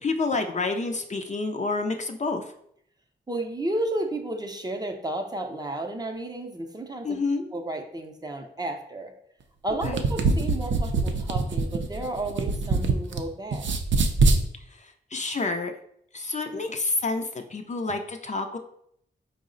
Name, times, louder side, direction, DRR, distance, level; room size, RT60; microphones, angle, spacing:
voice 1, 0.0-2.5 7.0-7.4 9.8-10.0 14.7-15.7 16.1-18.6, left 3 dB, 40° left, 5 dB, 0.4 m, -29 dB
voice 2, 3.3-7.2 7.5-9.1 9.6-13.7, right 1 dB, 20° right, 4 dB, 0.5 m, -32 dB
sound 1, 9.7-13.2 13.5-14.4, right 3 dB, 90° right, 0.4 m, -23 dB
4.6 x 2.0 x 3.7 m, 0.70 s
wide cardioid pair, 85°, 19 cm